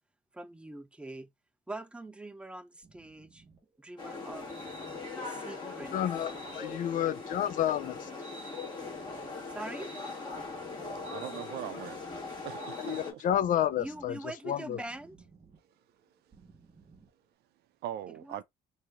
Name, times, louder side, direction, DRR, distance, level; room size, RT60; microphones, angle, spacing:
voice 1, 0.3-1.3 1.7-3.4 3.8-4.5 5.1-5.9 9.5-9.9 13.8-15.2 18.2-18.4, right 2 dB, 5° right, 0.5 m, -43 dB
sound 1, 2.8-17.2, right 4 dB, 25° right, 1.3 m, -60 dB
sound 2, 4.0-13.1, left 3 dB, 25° left, 1.4 m, -40 dB
voice 2, 5.6-8.1 12.8-14.2 14.4-14.8, left 10 dB, 50° left, 0.4 m, -31 dB
voice 3, 11.1-12.0 12.4-13.2 17.8-18.4, right 11 dB, 70° right, 0.5 m, -40 dB
3.0 x 2.8 x 3.4 m
cardioid pair, 110°, 17 cm